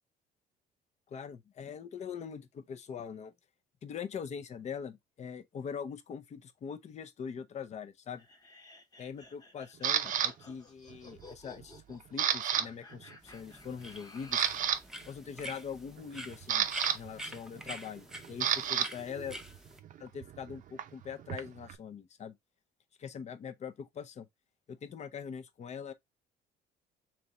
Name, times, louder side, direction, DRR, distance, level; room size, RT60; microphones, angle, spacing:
voice 1, 1.1-3.3 3.8-8.3 9.0-14.5 15.0-16.7 16.9-19.4 20.0-22.4 23.0-24.3 24.7-25.9, left 7 dB, 40° left, 0.6 m, -42 dB
sound 1, 8.2-14.7, left 3 dB, 20° left, 1.1 m, -55 dB
Camera, 9.8-10.3 10.9-11.2 11.6-12.7 12.9-13.1 13.7-13.8 14.2-14.8 16.0-18.9 19.2-21.8, right 9 dB, 50° right, 0.6 m, -31 dB
sound 2, 13.2-19.8, right 1 dB, 5° right, 0.7 m, -46 dB
3.4 x 3.0 x 3.9 m
cardioid pair, 110°, 17 cm